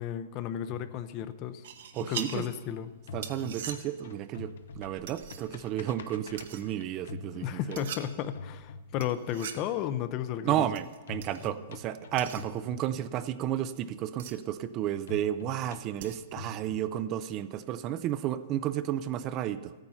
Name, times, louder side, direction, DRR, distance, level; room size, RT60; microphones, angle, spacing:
voice 1, 0.0-1.6 2.1-2.9 7.4-10.7, left 10 dB, 35° left, 12 dB, 0.6 m, -33 dB
sound 1, 0.7-2.7 3.0-9.4 11.1-13.4 15.1-17.4, left 4 dB, 75° left, 0.8 m, -46 dB
sound 2, 1.6-16.5, right 8 dB, 65° right, 1.0 m, -46 dB
voice 2, 1.9-2.4 3.1-7.8 10.4-19.7, right 11 dB, 30° right, 13 dB, 0.5 m, -32 dB
13.5 x 9.0 x 5.6 m, 1.3 s
hypercardioid pair, 145°, 0 cm